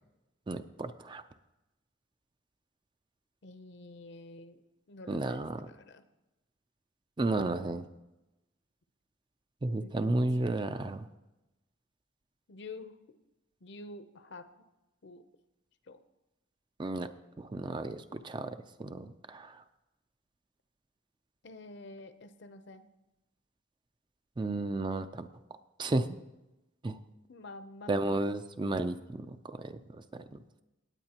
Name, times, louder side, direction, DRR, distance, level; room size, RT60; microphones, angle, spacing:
voice 1, 0.5-1.2 5.1-5.7 7.2-7.8 9.6-11.1 16.8-17.1 17.4-19.6 24.4-25.3 25.8-26.2 26.8-27.0 27.9-29.8 30.3-30.4, right 2 dB, 25° right, 10 dB, 0.4 m, -33 dB
voice 2, 3.4-4.6 4.9-6.0 9.8-10.1 12.5-13.0 13.6-14.5 15.0-15.2 15.9-16.0 21.4-22.9 27.3-28.2, left 2 dB, 55° left, 11 dB, 0.6 m, -48 dB
18.0 x 8.8 x 2.9 m, 1.0 s
head